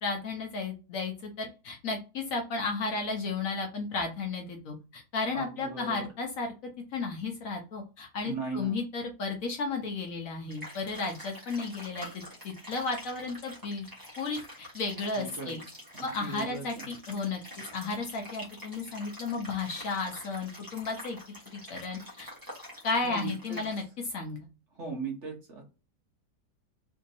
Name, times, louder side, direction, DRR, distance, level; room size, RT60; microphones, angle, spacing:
voice 1, 0.0-6.5 6.9-12.1 12.4-13.9 14.2-15.6 16.0-17.4 17.7-21.2 21.5-22.3 22.8-24.4, left 3 dB, 60° left, 3 dB, 1.0 m, -33 dB
voice 2, 5.3-6.1 8.2-8.8 15.1-16.9 23.0-23.6 24.7-25.7, right 4 dB, 50° right, 1 dB, 1.1 m, -38 dB
sound 1, 10.5-23.8, left 1 dB, 15° right, 1.0 m, -46 dB
3.4 x 2.8 x 2.6 m, 0.32 s
omnidirectional pair, 1.8 m